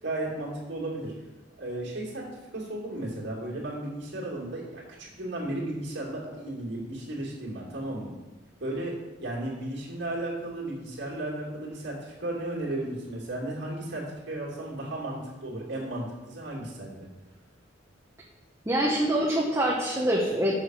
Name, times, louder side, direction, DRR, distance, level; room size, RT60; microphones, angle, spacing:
voice 1, 0.0-1.1 1.6-8.1 8.6-17.1, right 1 dB, 60° right, -4 dB, 2.8 m, -34 dB
voice 2, 18.7-20.6, right 1 dB, 15° right, -4 dB, 1.1 m, -25 dB
7.2 x 6.4 x 6.4 m, 1.1 s
head